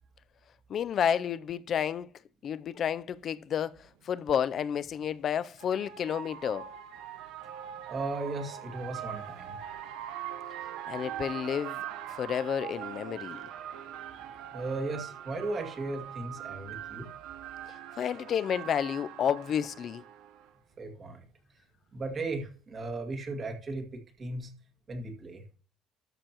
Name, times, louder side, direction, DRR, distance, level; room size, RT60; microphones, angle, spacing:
voice 1, 0.7-2.1 2.4-6.7 10.9-11.8 12.1-13.5 18.0-20.0, left 8 dB, 40° left, 0.4 m, -31 dB
sound 1, 3.4-3.5 4.9-20.5, right 10 dB, 85° right, 0.9 m, -42 dB
voice 2, 7.9-9.6 14.5-17.1 20.8-21.2 21.9-24.5 24.9-25.4, right 2 dB, 30° right, 2.1 m, -36 dB
12.5 x 6.7 x 2.9 m
cardioid pair, 155°, 0 cm